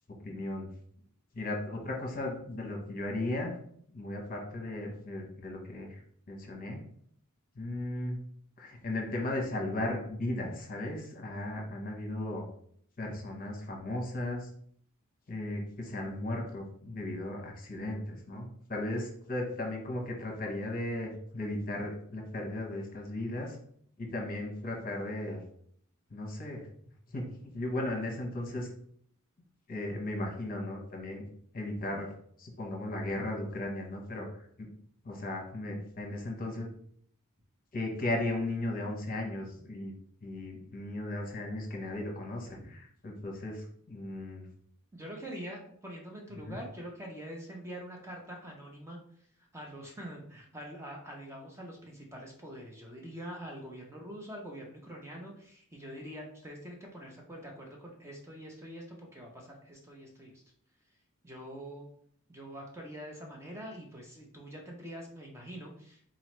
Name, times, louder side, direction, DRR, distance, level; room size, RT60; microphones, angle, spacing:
voice 1, 0.2-0.7 1.3-3.6 3.9-6.0 6.3-6.8 7.5-8.2 8.6-12.4 13.0-14.5 15.3-23.6 24.0-25.4 26.1-26.6 27.1-28.7 29.7-31.2 31.5-32.1 32.4-34.7 35.0-36.7 37.7-39.9 40.2-44.5 46.5-46.6, left 1 dB, 40° left, 1 dB, 0.9 m, -36 dB
voice 2, 44.9-49.0 49.4-60.3 61.2-61.9 62.3-66.1, equal, 10° right, -1 dB, 0.5 m, -45 dB
3.9 x 3.1 x 3.1 m, 0.62 s
head